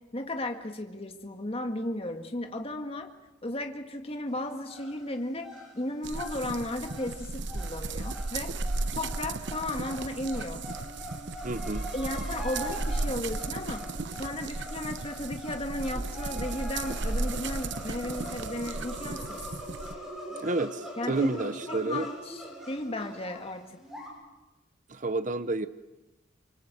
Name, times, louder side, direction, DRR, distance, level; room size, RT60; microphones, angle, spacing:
voice 1, 0.1-3.1 3.4-8.6 8.9-10.7 11.9-13.8 14.2-19.4 21.0-23.8, left 1 dB, 30° left, 5 dB, 1.8 m, -35 dB
sound 1, 4.3-24.1, equal, ahead, 7.5 m, -43 dB
sound 2, 6.0-19.9, right 3 dB, 65° right, 1.0 m, -35 dB
voice 2, 11.4-11.8 20.4-22.1 24.9-25.7, right 2 dB, 40° right, 12 dB, 0.9 m, -30 dB
25.5 x 24.5 x 8.0 m, 1.1 s
head